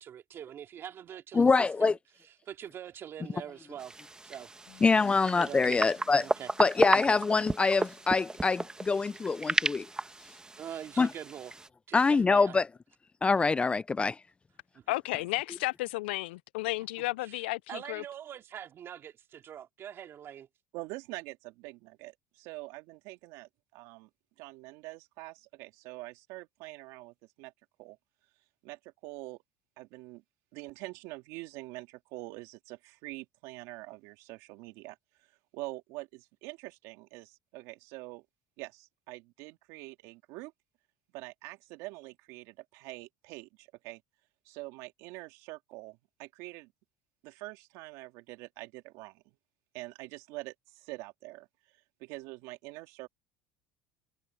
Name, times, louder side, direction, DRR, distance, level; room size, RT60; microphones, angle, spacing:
voice 1, 0.0-1.9 2.4-3.9 4.2-4.8 5.4-5.8 6.2-6.5 10.6-11.5 11.9-12.6 14.7-15.0 17.2-17.4 17.7-20.5, right 9 dB, 45° right, 2.9 m, -44 dB
voice 2, 1.3-1.9 4.8-6.3 6.6-9.9 11.0-11.1 11.9-12.6 13.2-14.2, left 4 dB, 20° left, 0.4 m, -25 dB
sound 1, 3.8-11.7, right 2 dB, 15° right, 1.3 m, -34 dB
Bass guitar, 4.7-10.9, left 21 dB, 70° left, 5.8 m, -62 dB
voice 3, 14.9-18.0, left 20 dB, 85° left, 0.4 m, -33 dB
voice 4, 20.7-24.1 24.4-27.5 27.8-28.0 28.6-29.4 29.8-30.2 30.5-35.0 35.5-38.3 38.6-40.5 41.1-44.0 44.5-46.7 47.2-49.2 49.7-51.5 52.0-53.1, right 22 dB, 75° right, 2.6 m, -45 dB
supercardioid pair, 85°, 6 cm